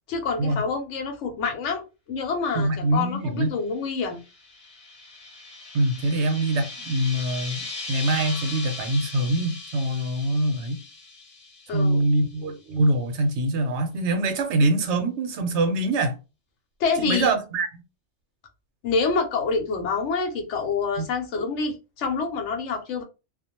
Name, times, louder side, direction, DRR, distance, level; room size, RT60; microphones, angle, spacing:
voice 1, 0.1-4.2 11.7-12.0 16.8-17.3 18.8-23.0, left 4 dB, 75° left, 1.0 m, -27 dB
voice 2, 2.5-3.5 5.7-10.8 11.7-16.2 17.0-17.7 21.0-21.1, right 2 dB, 70° right, 0.9 m, -24 dB
sound 1, 4.0-12.3, left 3 dB, 35° left, 0.7 m, -38 dB
2.4 x 2.1 x 2.8 m
omnidirectional pair, 1.2 m